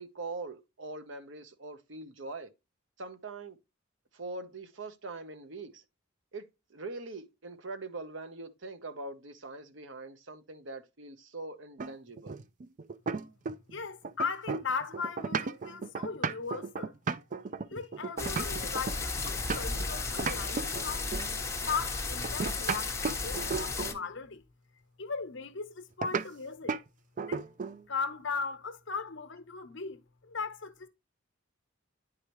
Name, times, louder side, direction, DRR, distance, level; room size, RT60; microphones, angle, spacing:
voice 1, 0.0-2.5 3.0-3.6 4.1-5.8 6.3-12.4, right 3 dB, 65° right, 1.0 m, -42 dB
sound 1, 11.8-13.8 14.0-19.9 20.2-21.3 22.2-24.0 26.0-26.3 26.7-26.9 27.2-27.8, right 5 dB, 40° right, 0.4 m, -34 dB
voice 2, 13.7-16.9 17.7-21.1 21.6-24.4 25.0-26.8 27.3-27.4 27.9-30.9, left 5 dB, 65° left, 1.0 m, -38 dB
Rain and thunder (great recording), 18.2-23.9, left 4 dB, 15° left, 1.1 m, -34 dB
9.8 x 4.8 x 3.1 m
head